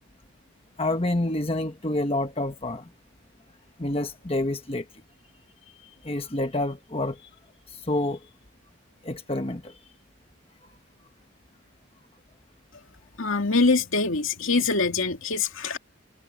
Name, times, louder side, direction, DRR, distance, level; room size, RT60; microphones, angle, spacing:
voice 1, 0.8-2.9 3.8-4.9 5.8-7.3 7.7-8.3 9.0-9.7, left 1 dB, 25° left, 1.2 m, -28 dB
voice 2, 13.2-15.8, left 3 dB, 75° left, 2.5 m, -24 dB
head